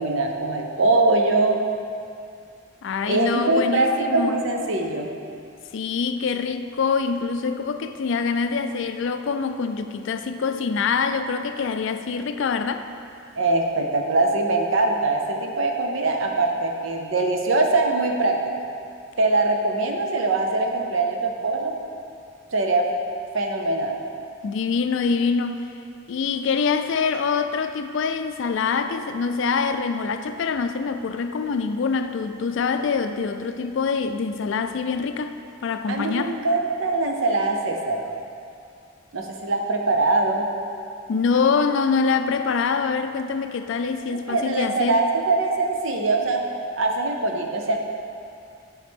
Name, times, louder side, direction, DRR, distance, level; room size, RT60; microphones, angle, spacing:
voice 1, 0.0-1.6 3.1-5.1 13.4-18.4 19.2-21.7 22.5-22.9 23.3-24.0 35.9-38.1 39.1-40.5 44.3-46.4 46.8-47.8, right 2 dB, 70° right, 0.7 m, -22 dB
voice 2, 2.8-4.4 5.7-12.9 24.4-25.7 26.1-35.4 35.6-36.4 41.1-45.0, left 5 dB, 65° left, 0.4 m, -25 dB
9.3 x 4.9 x 3.6 m
head